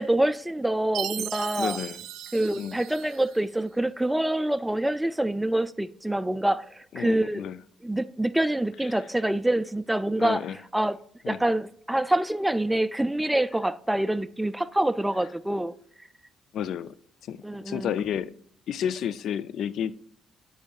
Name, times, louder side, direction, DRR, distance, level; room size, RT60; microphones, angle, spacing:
voice 1, 0.0-1.8 2.3-6.7 7.0-7.4 7.8-10.4 10.7-11.0 11.3-15.7 17.4-17.9, right 1 dB, 5° right, 0.4 m, -26 dB
Chime, 0.9-3.4, right 11 dB, 75° right, 0.4 m, -36 dB
voice 2, 1.6-2.0 2.5-2.8 6.9-7.6 10.2-10.6 11.2-11.4 16.5-16.9 17.2-18.3 18.7-20.0, left 9 dB, 75° left, 0.3 m, -31 dB
8.6 x 5.5 x 2.4 m
cardioid pair, 80°, 0 cm